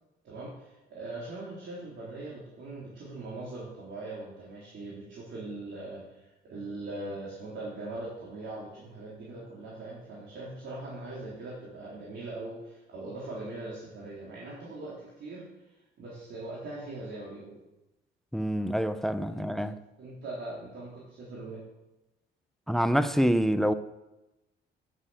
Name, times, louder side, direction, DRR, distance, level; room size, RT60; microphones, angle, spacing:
voice 1, 0.2-15.5 16.0-17.6 19.3-19.5 20.0-21.6, right 2 dB, 70° right, 3.8 m, -41 dB
voice 2, 18.3-19.8 22.7-23.7, equal, ahead, 0.7 m, -26 dB
10.5 x 7.5 x 8.0 m
cardioid pair, 90°, 20 cm